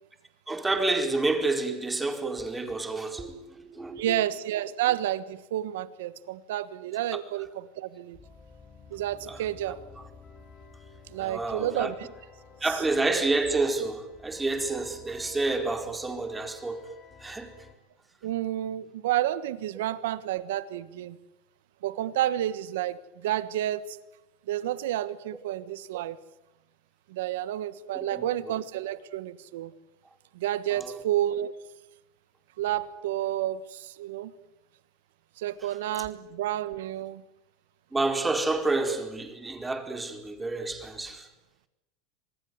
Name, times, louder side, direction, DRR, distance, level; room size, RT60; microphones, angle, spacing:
voice 1, 0.5-4.2 9.3-9.4 11.2-11.9 12.6-16.9 17.2-17.5 27.9-28.5 30.7-31.0 37.9-41.3, right 3 dB, 15° right, 4.6 m, -29 dB
voice 2, 4.0-8.2 8.9-9.8 11.1-11.9 18.2-21.2 21.8-24.0 24.5-26.2 27.1-29.7 30.3-31.5 32.6-34.3 35.4-37.2, right 12 dB, 85° right, 1.3 m, -30 dB
sound 1, 8.1-17.7, left 4 dB, 30° left, 5.2 m, -52 dB
26.5 x 19.5 x 9.5 m
supercardioid pair, 105°, 0 cm